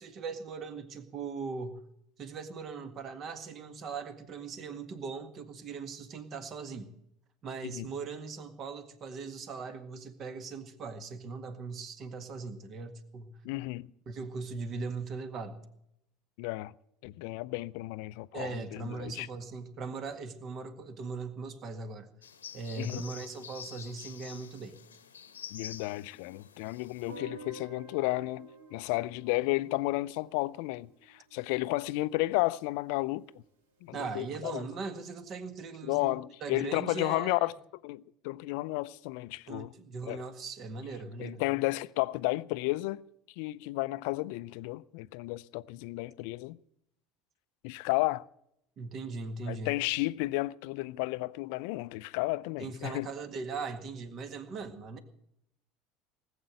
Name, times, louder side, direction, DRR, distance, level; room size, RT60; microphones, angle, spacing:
voice 1, 0.0-1.8 2.2-6.9 7.4-13.3 14.1-15.6 18.3-22.1 22.5-24.8 33.9-36.2 36.4-37.5 39.5-41.4 48.8-49.7 52.6-55.0, right 4 dB, 45° right, 1.9 m, -39 dB
voice 2, 13.4-13.9 16.4-16.7 17.0-19.3 22.8-23.0 25.5-33.2 33.8-34.6 35.8-37.5 37.8-39.7 40.1-40.2 41.2-43.0 43.4-46.6 47.6-48.3 49.5-53.1, left 20 dB, 60° left, 0.5 m, -32 dB
sound 1, 22.2-27.2, left 8 dB, 80° left, 0.9 m, -48 dB
Guitar, 27.1-32.0, right 2 dB, 75° right, 2.4 m, -51 dB
19.0 x 8.1 x 7.9 m
figure-of-eight pair, 70°, 0 cm